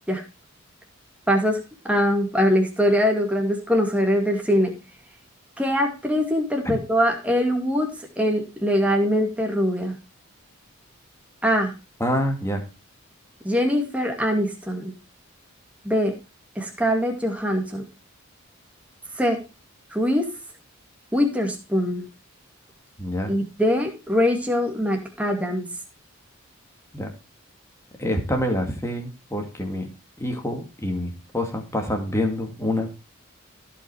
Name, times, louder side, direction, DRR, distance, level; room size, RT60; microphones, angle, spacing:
voice 1, 1.3-1.6 1.8-4.7 5.6-9.9 11.4-11.7 13.4-14.9 15.8-16.1 16.6-17.8 19.2-19.4 19.9-20.3 21.1-22.1 23.3-25.7, equal, 5° right, 2 dB, 2.2 m, -22 dB
voice 2, 12.0-12.6 23.0-23.3 26.9-27.1 28.0-29.9 30.2-32.9, left 1 dB, 15° left, 4 dB, 2.1 m, -26 dB
15.5 x 5.5 x 4.7 m, 0.30 s
head